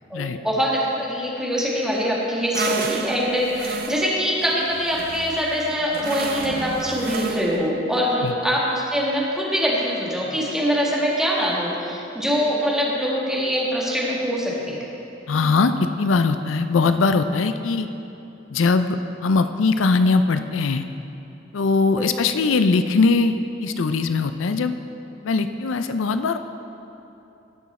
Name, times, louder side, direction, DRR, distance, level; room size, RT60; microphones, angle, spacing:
voice 1, 0.1-14.8 22.0-22.1, equal, 5° right, -5 dB, 1.7 m, -23 dB
sound 1, 2.5-7.7, right 4 dB, 50° right, 0.5 m, -31 dB
voice 2, 15.3-17.9 18.5-20.9 21.5-24.7 25.2-26.4, left 4 dB, 85° left, 9 dB, 0.5 m, -21 dB
18.0 x 6.3 x 4.2 m, 2.9 s
head